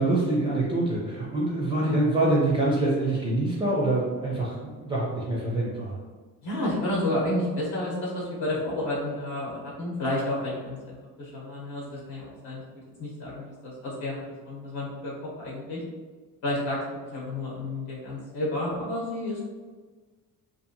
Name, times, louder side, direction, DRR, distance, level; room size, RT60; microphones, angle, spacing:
voice 1, 0.0-6.0, right 2 dB, 15° right, -6 dB, 0.4 m, -25 dB
voice 2, 6.4-12.6 13.0-15.1 15.4-15.8 16.4-16.8 17.1-19.4, left 1 dB, 65° left, -5 dB, 0.8 m, -31 dB
2.7 x 2.4 x 2.6 m, 1.4 s
cardioid pair, 165°, 33 cm